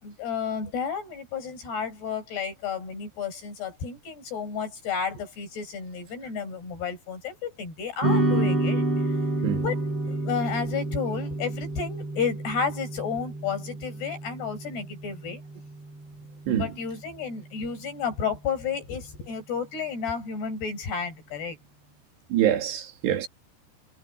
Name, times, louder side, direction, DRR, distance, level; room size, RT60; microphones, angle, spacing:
voice 1, 0.0-8.9 9.6-15.4 16.5-21.6, left 6 dB, 70° left, 8.3 m, -32 dB
sound 1, 8.0-16.5, right 2 dB, 35° right, 8.0 m, -29 dB
voice 2, 22.3-23.3, right 11 dB, 75° right, 4.3 m, -25 dB
omnidirectional pair, 4.9 m